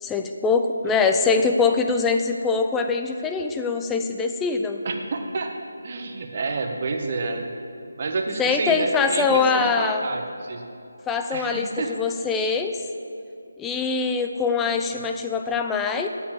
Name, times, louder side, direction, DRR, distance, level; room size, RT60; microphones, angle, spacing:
voice 1, 0.0-4.8 8.4-10.0 11.1-11.7 12.0-12.8 13.6-16.1, left 4 dB, 10° left, 5 dB, 0.5 m, -23 dB
voice 2, 4.8-5.6 5.8-7.5 8.0-10.7 11.3-11.9, right 3 dB, 40° right, 3 dB, 1.2 m, -29 dB
9.2 x 6.8 x 7.1 m, 2.6 s
figure-of-eight pair, 160°, 0 cm